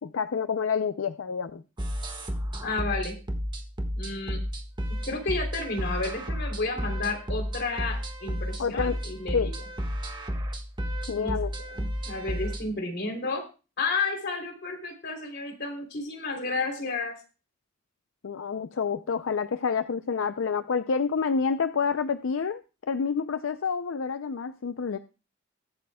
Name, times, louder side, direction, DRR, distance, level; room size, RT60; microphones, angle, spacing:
voice 1, 0.0-1.6 8.6-9.0 9.3-9.5 11.1-11.5 18.2-25.0, left 5 dB, 80° left, 11 dB, 0.5 m, -28 dB
sound 1, 1.8-12.6, equal, 25° right, 1.5 m, -32 dB
voice 2, 2.6-3.2 4.0-4.4 5.0-9.5 11.2-11.4 11.7-13.4 13.8-17.1, left 3 dB, 55° left, 3 dB, 3.3 m, -31 dB
21.0 x 8.4 x 2.3 m, 0.32 s
head